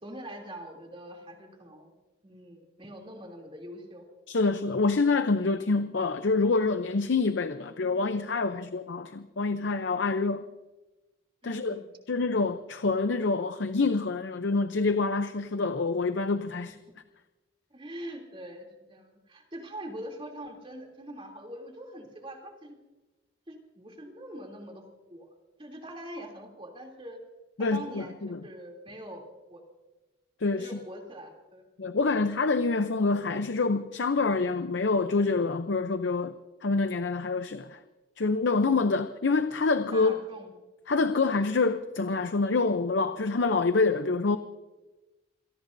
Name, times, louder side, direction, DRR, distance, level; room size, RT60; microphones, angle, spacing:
voice 1, 0.0-1.9 2.2-4.0 11.4-11.8 17.7-22.8 23.5-25.3 25.6-27.2 27.6-29.2 29.5-29.6 30.6-31.6 39.9-40.5, right 1 dB, 25° right, 1 dB, 3.0 m, -43 dB
voice 2, 4.3-10.4 11.4-11.8 12.1-16.8 27.6-28.4 30.4-30.8 31.8-36.3 36.6-37.8 38.2-40.2 40.9-44.4, left 3 dB, 65° left, 9 dB, 0.6 m, -26 dB
27.5 x 18.0 x 2.7 m, 1.1 s
head